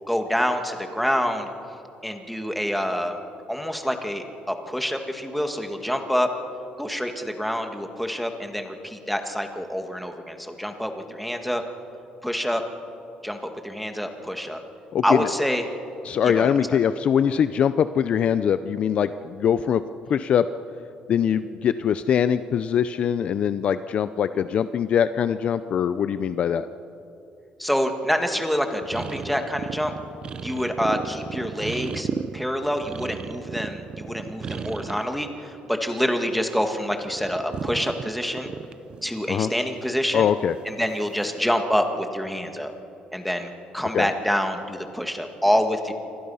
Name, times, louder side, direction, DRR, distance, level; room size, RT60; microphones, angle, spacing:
voice 1, 0.1-1.5 2.0-3.2 3.5-6.3 6.8-11.6 12.2-12.6 13.2-14.6 15.0-15.6 16.2-16.8 27.6-29.9 30.4-38.5 39.0-40.3 40.7-42.7 43.1-45.9, equal, ahead, 5 dB, 1.8 m, -26 dB
voice 2, 14.9-15.3 16.0-19.8 20.1-20.5 21.1-26.7 39.3-39.5 40.1-40.5 43.9-44.1, left 8 dB, 45° left, 12 dB, 0.6 m, -22 dB
sound 1, 28.8-35.2 35.5-36.5 36.8-40.3 41.1-41.4, right 6 dB, 35° right, 0.7 m, -35 dB
28.0 x 24.5 x 5.6 m, 2.8 s
cardioid pair, 145°, 3 cm